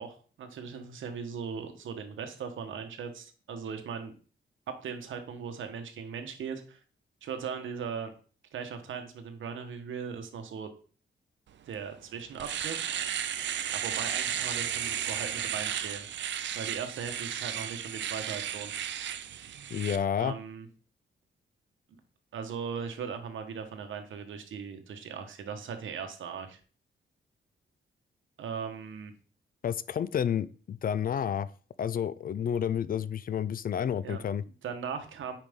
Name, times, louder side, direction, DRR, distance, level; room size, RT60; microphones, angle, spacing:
voice 1, 0.0-4.1 4.7-6.8 7.2-8.1 8.5-10.7 11.7-12.9 13.7-16.1 16.5-18.7 20.2-20.7 22.3-26.6 28.4-29.1 34.0-34.2 34.6-35.4, right 6 dB, 85° right, 7 dB, 1.2 m, -38 dB
Domestic sounds home sounds, 11.7-11.8 12.2-20.0, right 10 dB, 70° right, 0.5 m, -34 dB
voice 2, 19.7-20.4 29.6-31.5 31.8-34.4, left 8 dB, 50° left, 18 dB, 0.4 m, -30 dB
9.0 x 4.9 x 3.6 m, 0.40 s
wide cardioid pair, 135°, 20 cm